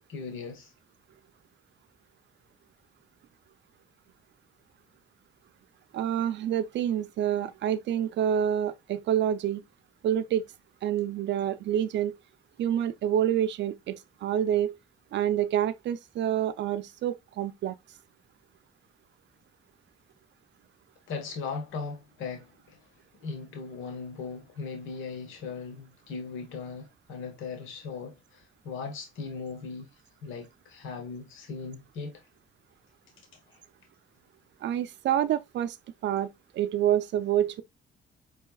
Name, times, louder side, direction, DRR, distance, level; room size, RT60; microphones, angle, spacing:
voice 1, 0.1-0.7 21.1-22.8 23.2-29.9 30.2-32.2 33.5-33.6, left 5 dB, 85° left, 1.2 m, -38 dB
voice 2, 5.9-9.6 10.0-10.4 10.8-12.1 12.6-14.7 15.1-17.7 34.6-35.8 36.0-36.3 36.5-37.6, right 10 dB, 65° right, 0.4 m, -27 dB
5.4 x 3.3 x 2.2 m
cardioid pair, 90°, 20 cm